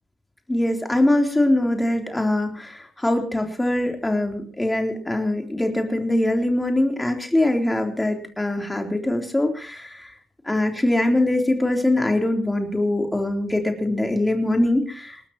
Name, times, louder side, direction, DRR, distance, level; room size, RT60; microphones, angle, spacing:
voice 1, 0.5-10.2 10.4-15.2, left 1 dB, 10° left, 3 dB, 3.5 m, -22 dB
28.5 x 13.0 x 3.0 m, 0.37 s
cardioid pair, 90°, 0 cm